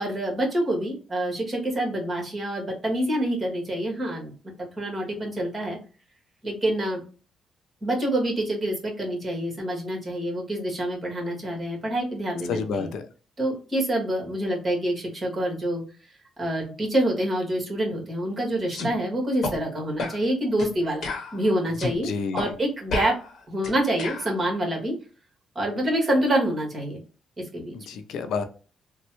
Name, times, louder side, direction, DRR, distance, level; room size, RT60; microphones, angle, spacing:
voice 1, 0.0-4.3 4.6-5.8 6.4-7.0 7.8-12.9 13.4-15.8 16.4-23.1 23.5-24.9 25.5-27.0 27.4-28.0, right 1 dB, 30° right, 1.7 m, -27 dB
voice 2, 12.4-13.1 22.0-22.5 27.7-28.4, left 5 dB, 80° left, 0.5 m, -29 dB
sound 1, 18.7-18.9 19.4-19.6 20.0-20.2 20.6-20.7 21.0-22.0 22.4-22.5 22.9-24.3, left 3 dB, 65° left, 1.0 m, -31 dB
3.3 x 2.2 x 3.0 m
cardioid pair, 90°, 0 cm